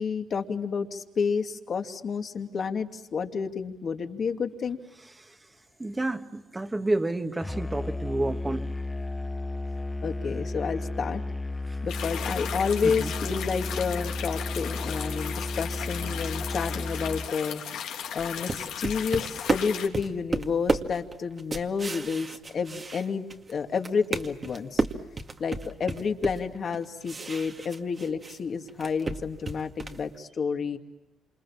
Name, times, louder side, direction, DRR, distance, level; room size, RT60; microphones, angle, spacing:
voice 1, 0.0-4.8 10.0-11.2 11.8-17.6 18.1-24.8 25.4-30.8, left 5 dB, 50° left, 5 dB, 2.5 m, -30 dB
voice 2, 5.8-8.7 12.8-13.1, right 2 dB, 15° right, 7 dB, 1.9 m, -29 dB
Musical instrument, 7.4-17.3, left 2 dB, 10° left, 1.1 m, -33 dB
sound 1, 11.9-19.9, left 9 dB, 85° left, 3.0 m, -36 dB
sound 2, 18.2-23.5 23.8-28.4 28.7-30.1, right 3 dB, 30° right, 2.1 m, -32 dB
28.0 x 27.0 x 7.4 m, 1.0 s
cardioid pair, 90°, 0 cm